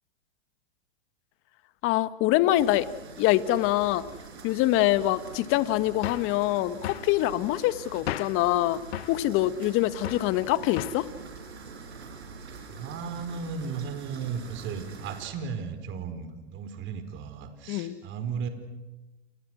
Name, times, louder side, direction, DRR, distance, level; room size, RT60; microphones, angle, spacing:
voice 1, 1.8-2.9 3.2-4.1 4.4-8.8 9.1-11.1 17.7-18.0, left 15 dB, 40° left, 14 dB, 1.6 m, -24 dB
sound 1, 2.5-15.3, right 4 dB, 80° right, 6.5 m, -44 dB
sound 2, 6.0-6.3 6.8-7.1 8.1-8.4 8.9-9.2 10.0-10.3 10.8-11.1, left 14 dB, 70° left, 0.8 m, -34 dB
voice 2, 12.7-18.5, right 6 dB, 35° right, 8 dB, 4.9 m, -35 dB
29.5 x 29.0 x 6.3 m, 1.1 s
hypercardioid pair, 115°, 32 cm